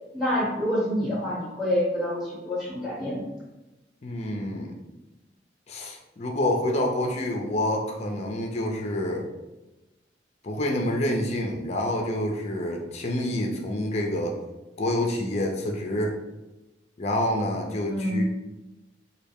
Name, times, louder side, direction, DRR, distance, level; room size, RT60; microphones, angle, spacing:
voice 1, 0.1-3.3 17.9-18.2, equal, ahead, -8 dB, 0.9 m, -27 dB
voice 2, 4.0-4.8 5.7-9.3 10.4-14.4 14.8-16.1 17.0-18.2, left 1 dB, 40° left, 2 dB, 0.5 m, -27 dB
3.2 x 2.2 x 3.5 m, 1.0 s
head